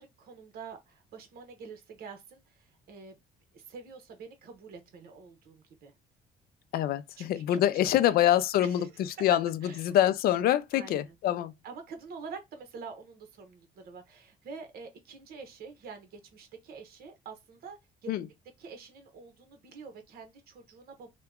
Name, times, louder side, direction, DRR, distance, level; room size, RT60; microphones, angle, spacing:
voice 1, 0.0-3.2 3.5-5.9 7.2-7.5 8.0-8.1 8.6-9.3 9.6-9.9 10.7-11.1 11.6-18.1 18.6-21.1, right 5 dB, 65° right, 1.0 m, -47 dB
voice 2, 6.7-11.5 18.1-18.3, left 12 dB, 65° left, 0.4 m, -25 dB
2.8 x 2.2 x 3.5 m
cardioid pair, 110°, 17 cm